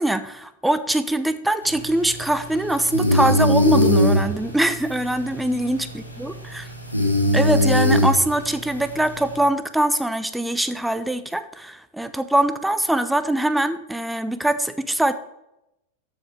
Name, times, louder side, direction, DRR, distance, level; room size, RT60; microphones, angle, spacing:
voice 1, 0.0-6.7 7.3-15.1, right 1 dB, 5° right, 12 dB, 0.8 m, -23 dB
sound 1, 1.6-9.4, left 1 dB, 90° left, 2.8 m, -22 dB
12.5 x 7.7 x 4.7 m, 0.87 s
figure-of-eight pair, 90°, 0 cm